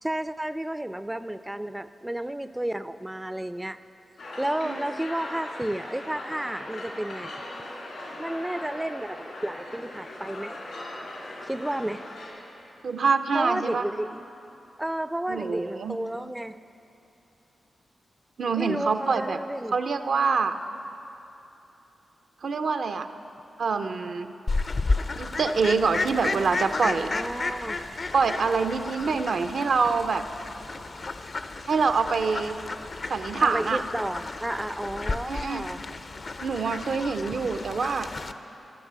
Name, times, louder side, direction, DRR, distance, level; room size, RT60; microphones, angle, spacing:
voice 1, 0.0-3.8 4.4-7.4 8.2-10.6 11.4-12.0 13.3-14.2 14.8-16.6 18.5-19.8 27.1-27.8 29.0-29.2 33.4-35.8, right 1 dB, 10° right, 12 dB, 0.3 m, -32 dB
sound 1, 4.2-12.3, left 1 dB, 80° left, 2.5 m, -39 dB
voice 2, 12.8-13.8 15.3-16.0 18.4-19.4 19.7-20.6 22.4-23.1 23.6-24.3 25.2-27.1 28.1-30.2 31.7-32.6 33.1-33.8 35.3-35.6 36.4-38.1, right 5 dB, 70° right, 8 dB, 0.5 m, -25 dB
Fowl, 24.5-38.3, left 3 dB, 50° left, 0.5 m, -33 dB
12.5 x 6.0 x 7.4 m, 2.9 s
cardioid pair, 55°, 0 cm